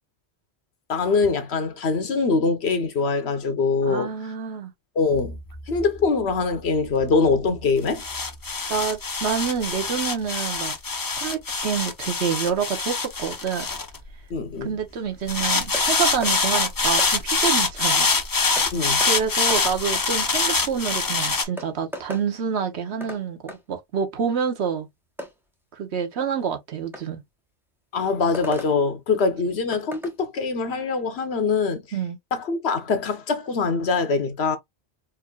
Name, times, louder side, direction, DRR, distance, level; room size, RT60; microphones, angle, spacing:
voice 1, 0.9-4.1 5.0-5.4 5.7-8.0 14.3-14.7 18.7-19.0 27.9-31.8 32.3-34.6, left 4 dB, 65° left, 1.1 m, -23 dB
voice 2, 3.8-4.7 8.7-10.8 11.2-13.7 14.6-18.1 19.0-24.9 25.7-27.2 31.9-32.2, right 7 dB, 70° right, 1.1 m, -27 dB
sound 1, 5.1-14.6 15.3-21.4, left 4 dB, 30° left, 0.4 m, -25 dB
sound 2, 15.7-15.9 16.2-16.4 17.0-17.1 18.6-18.7 19.0-19.1 19.5-19.6 21.0-21.1 21.6-22.3 23.0-23.2 23.5-23.6 25.2-25.3 26.9-27.1 28.3-28.7 29.7-30.2, equal, ahead, 0.7 m, -35 dB
4.7 x 2.6 x 2.2 m
omnidirectional pair, 1.2 m